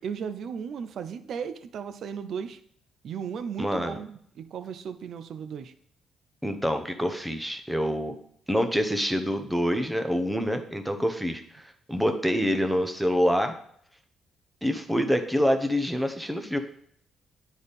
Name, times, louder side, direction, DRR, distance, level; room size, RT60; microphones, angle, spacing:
voice 1, 0.0-2.6 3.0-5.7, right 7 dB, 65° right, 11 dB, 0.4 m, -36 dB
voice 2, 3.6-4.0 6.4-8.2 8.5-13.5 14.6-16.6, equal, 5° right, 7 dB, 0.8 m, -26 dB
9.4 x 4.1 x 3.5 m, 0.65 s
cardioid pair, 90°, 0 cm